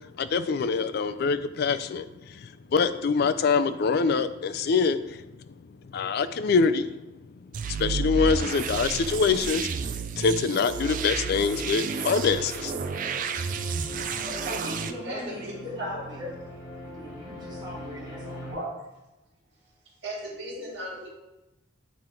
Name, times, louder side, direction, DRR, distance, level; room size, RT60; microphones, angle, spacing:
voice 1, 0.2-2.0 2.7-5.2 5.9-6.9 7.8-9.7 10.2-12.7, left 5 dB, 55° left, 11 dB, 0.4 m, -24 dB
sound 1, 7.5-14.9, right 5 dB, 40° right, 0.3 m, -31 dB
sound 2, 10.5-18.5, left 1 dB, 20° left, 2.5 m, -41 dB
voice 2, 14.2-16.2 16.8-18.6, left 1 dB, 20° right, -4 dB, 1.7 m, -40 dB
voice 3, 15.0-16.3 18.4-18.7 20.0-21.1, right 1 dB, 60° right, -5 dB, 2.2 m, -36 dB
7.5 x 3.8 x 4.3 m, 0.99 s
head